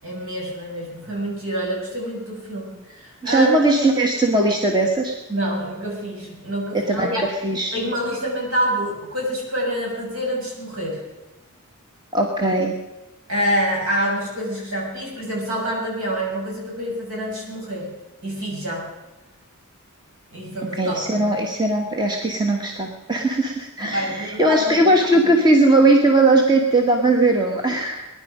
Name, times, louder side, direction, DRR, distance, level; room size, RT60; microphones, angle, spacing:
voice 1, 0.0-3.5 5.3-7.2 7.7-11.0 13.3-17.9 18.2-18.9 20.3-21.0 23.8-25.3, equal, 70° right, -2 dB, 6.7 m, -27 dB
voice 2, 3.2-5.1 6.9-7.7 12.1-12.7 20.8-28.1, right 2 dB, 20° right, 1 dB, 1.4 m, -19 dB
21.0 x 10.5 x 5.0 m, 1.1 s
head